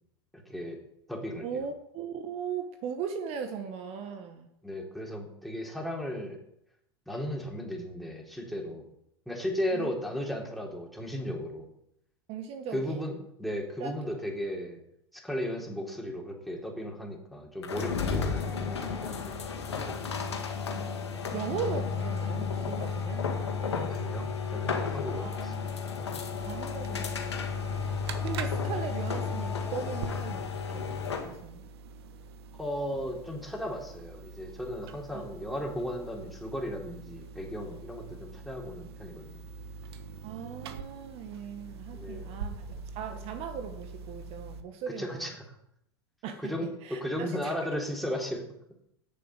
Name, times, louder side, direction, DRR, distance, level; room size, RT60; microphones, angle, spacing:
voice 1, 0.3-0.8 1.1-1.6 4.6-6.4 7.1-8.9 9.2-11.7 12.7-14.8 15.1-19.3 23.9-25.5 32.6-39.4 41.9-42.4 45.0-45.5 46.4-48.4, equal, ahead, -1 dB, 3.5 m, -35 dB
voice 2, 1.4-4.5 9.7-9.9 12.3-13.1 13.8-14.1 20.2-21.0 21.3-23.2 25.2-25.7 26.5-27.7 28.2-30.9 31.2-31.6 35.1-35.2 40.2-42.7 42.9-45.3 46.2-47.5, right 7 dB, 45° right, 6 dB, 1.3 m, -38 dB
sound 1, 17.6-31.4, left 5 dB, 85° left, 2.0 m, -33 dB
sound 2, 26.4-44.6, right 4 dB, 75° right, 1.4 m, -45 dB
9.4 x 7.1 x 8.2 m, 0.77 s
hypercardioid pair, 95°, 14 cm